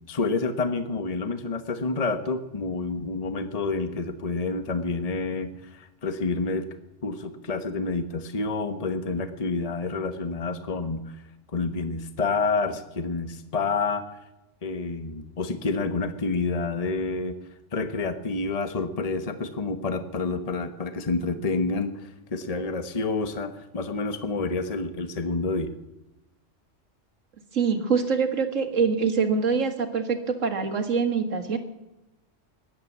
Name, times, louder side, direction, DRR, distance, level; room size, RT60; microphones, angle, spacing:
voice 1, 0.1-6.6 7.0-11.1 11.5-14.0 14.6-17.4 17.7-25.7, left 3 dB, 30° left, 10 dB, 1.1 m, -28 dB
voice 2, 27.5-31.6, right 5 dB, 90° right, 6 dB, 2.1 m, -24 dB
16.5 x 11.0 x 7.4 m, 0.94 s
omnidirectional pair, 1.3 m